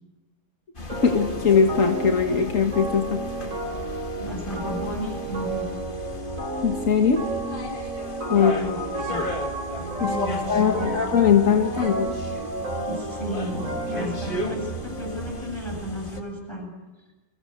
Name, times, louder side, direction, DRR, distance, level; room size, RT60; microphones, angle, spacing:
sound 1, 0.8-16.2, left 1 dB, 35° left, 2.6 m, -35 dB
sound 2, 0.9-15.5, right 2 dB, 70° right, 4.7 m, -32 dB
voice 1, 1.0-3.2 6.6-7.2 8.3-8.5 10.0-12.1, left 6 dB, 65° left, 4 dB, 1.9 m, -20 dB
voice 2, 4.2-5.7 8.3-9.3 10.0-10.9 12.8-16.7, equal, 20° left, 0 dB, 8.0 m, -33 dB
29.5 x 23.5 x 8.0 m, 1.1 s
omnidirectional pair, 1.5 m